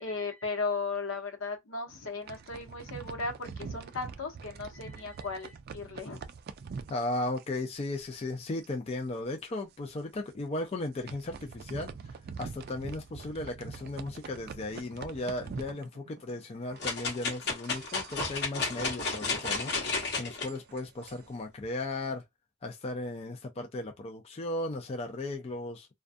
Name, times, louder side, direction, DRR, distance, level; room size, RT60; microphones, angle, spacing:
voice 1, 0.0-6.2, left 3 dB, 80° left, 0.8 m, -36 dB
sound 1, 2.0-8.4 8.6-8.9 9.2-9.3 9.9-10.0 10.7-16.4 16.7-21.4, right 5 dB, 50° right, 0.3 m, -45 dB
voice 2, 6.9-11.9 12.4-22.2 22.6-25.9, left 2 dB, 30° left, 0.4 m, -36 dB
sound 2, 16.8-20.5 21.0-21.1, left 4 dB, 55° left, 1.0 m, -32 dB
2.4 x 2.2 x 2.5 m
head